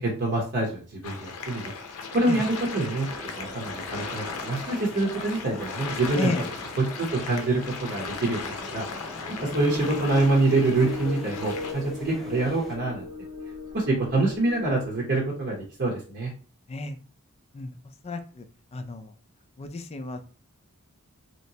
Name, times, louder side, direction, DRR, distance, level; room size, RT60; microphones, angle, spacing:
voice 1, 0.0-3.1 3.4-6.3 6.8-8.8 9.4-13.1 13.7-16.3, right 2 dB, 50° right, -2 dB, 0.8 m, -26 dB
sound 1, 1.0-11.7, left 4 dB, 70° left, 0.6 m, -37 dB
sound 2, 3.1-12.8, equal, ahead, 0.7 m, -44 dB
sound 3, 9.5-15.4, left 3 dB, 85° right, 1.7 m, -38 dB
voice 2, 18.0-18.4 18.7-19.1 19.6-20.2, left 2 dB, 30° left, 8 dB, 0.4 m, -31 dB
3.2 x 2.9 x 2.7 m, 0.38 s
head